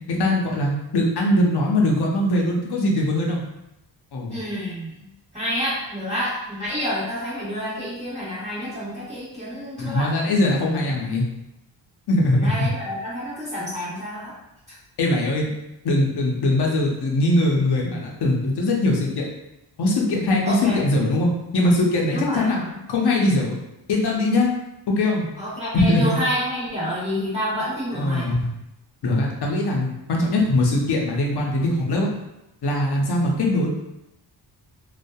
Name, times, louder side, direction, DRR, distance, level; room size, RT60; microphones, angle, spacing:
voice 1, 0.1-3.4 4.1-4.4 9.8-11.2 12.1-12.7 15.0-15.5 15.8-19.2 19.8-22.6 22.9-23.6 23.9-24.5 24.9-25.3 25.7-26.2 27.9-28.5 29.0-32.1 32.6-33.7, left 1 dB, 60° left, -1 dB, 0.8 m, -21 dB
voice 2, 4.3-4.9 5.3-10.1 12.3-14.3 20.5-20.8 22.1-22.8 25.4-28.3, equal, 15° right, -9 dB, 1.2 m, -28 dB
2.6 x 2.4 x 2.3 m, 0.88 s
cardioid pair, 75°, 45 cm